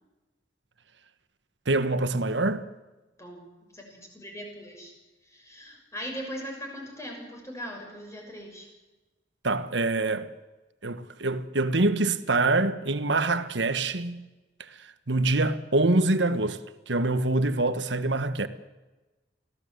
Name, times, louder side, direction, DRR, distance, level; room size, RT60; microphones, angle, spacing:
voice 1, 1.7-2.7 9.4-10.3 10.8-14.3 14.7-14.8 15.1-16.6 16.9-18.5, right 2 dB, 70° right, 1.4 m, -25 dB
voice 2, 3.2-4.9 5.2-8.7, equal, 15° left, 6.5 m, -40 dB
25.0 x 17.0 x 8.0 m
head